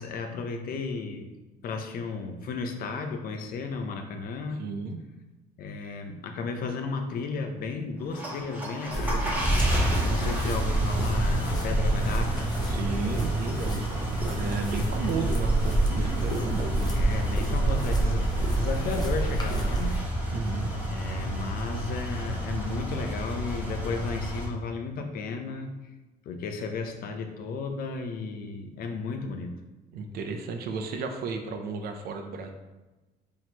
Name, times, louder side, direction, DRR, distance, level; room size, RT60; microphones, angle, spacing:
voice 1, 0.0-1.4 1.6-4.7 5.6-9.5 10.0-12.5 16.9-20.0 20.9-25.7 26.3-29.5, left 4 dB, 60° left, 5 dB, 0.6 m, -34 dB
voice 2, 4.6-5.0 12.7-17.0 20.3-20.7 29.9-32.5, right 4 dB, 65° right, 5 dB, 0.5 m, -33 dB
sound 1, 8.0-24.5, right 1 dB, 10° right, 1.1 m, -31 dB
sound 2, 8.9-20.0, right 2 dB, 25° left, 0.7 m, -28 dB
4.2 x 3.0 x 2.9 m, 1.1 s
cardioid pair, 110°, 17 cm